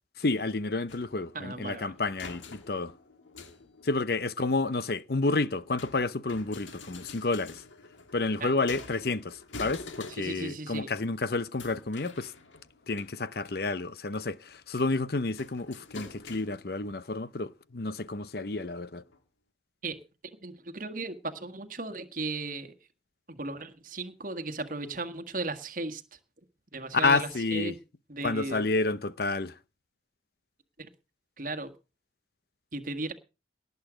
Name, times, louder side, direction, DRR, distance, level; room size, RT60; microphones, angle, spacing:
voice 1, 0.2-2.9 3.8-7.6 8.1-12.3 12.9-19.0 26.9-27.7 28.2-29.6, left 3 dB, 55° left, 0.7 m, -30 dB
sound 1, 0.9-4.2 5.0-10.5 10.8-11.1 11.6-13.8 14.2-14.6 15.4-16.9 17.8-17.9 18.6-18.7 19.1-19.2, left 3 dB, 90° left, 1.9 m, -47 dB
voice 2, 1.3-1.9 8.4-8.5 10.2-10.9 19.8-20.0 20.4-22.7 23.3-26.0 26.7-27.7 28.1-28.6 30.8-30.9 31.4-31.7 32.7-33.1, right 2 dB, 45° right, 1.7 m, -36 dB
18.5 x 8.3 x 5.1 m
head